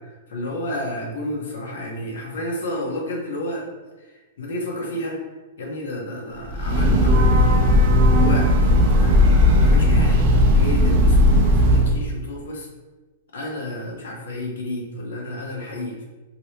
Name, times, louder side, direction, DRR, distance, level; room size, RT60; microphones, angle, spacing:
voice 1, 0.3-3.7 4.4-5.2 5.6-9.2 9.6-10.2 10.5-12.7 13.3-16.0, left 1 dB, 80° left, 0 dB, 0.9 m, -31 dB
Breathing / Train, 6.4-12.0, left 1 dB, 35° right, 0.6 m, -16 dB
2.9 x 2.8 x 3.1 m, 1.3 s
supercardioid pair, 170°, 0 cm